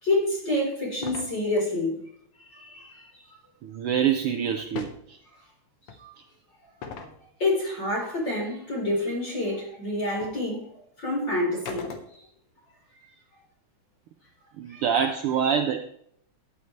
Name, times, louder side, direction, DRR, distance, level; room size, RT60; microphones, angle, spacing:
voice 1, 0.0-2.0 2.4-3.0 6.0-6.1 7.4-10.7 11.0-11.9 14.7-14.8, left 2 dB, 35° left, -3 dB, 4.7 m, -28 dB
sound 1, 1.0-1.3 4.6-5.0 5.9-6.0 6.8-7.2 9.5-9.6 10.2-10.4 11.7-12.4, left 5 dB, 60° left, 1.8 m, -38 dB
voice 2, 3.6-5.2 14.6-15.8, right 8 dB, 85° right, 7 dB, 1.2 m, -25 dB
13.0 x 9.5 x 3.2 m, 0.69 s
omnidirectional pair, 3.3 m